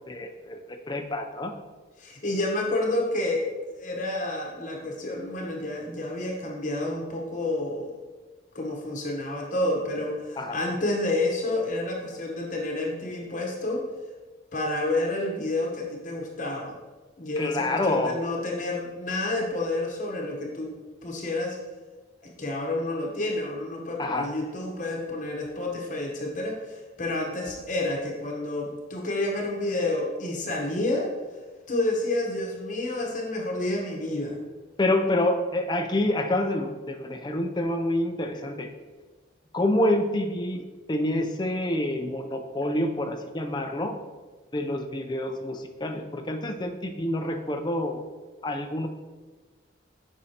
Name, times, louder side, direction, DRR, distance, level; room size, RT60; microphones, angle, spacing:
voice 1, 0.1-0.6 0.9-1.5 10.4-10.6 17.4-18.2 24.0-24.3 34.8-38.7 39.5-43.9 44.5-48.0 48.4-48.9, left 1 dB, 25° left, 4 dB, 0.5 m, -27 dB
voice 2, 2.0-3.5 3.8-8.0 8.5-13.8 14.5-16.7 17.2-20.7 21.0-21.6 22.2-31.1 31.7-34.4, left 2 dB, 40° left, -1 dB, 1.0 m, -29 dB
7.7 x 5.4 x 2.9 m, 1.3 s
head